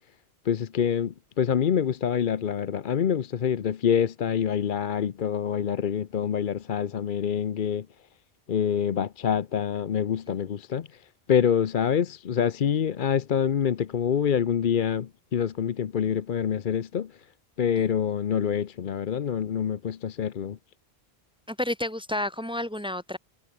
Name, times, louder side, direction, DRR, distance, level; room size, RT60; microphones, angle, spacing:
voice 1, 0.4-7.9 8.5-11.0 11.3-17.1 17.6-20.6, left 8 dB, 55° left, 0.9 m, -26 dB
voice 2, 21.5-23.2, left 1 dB, 10° right, 0.4 m, -30 dB
omnidirectional pair, 1.1 m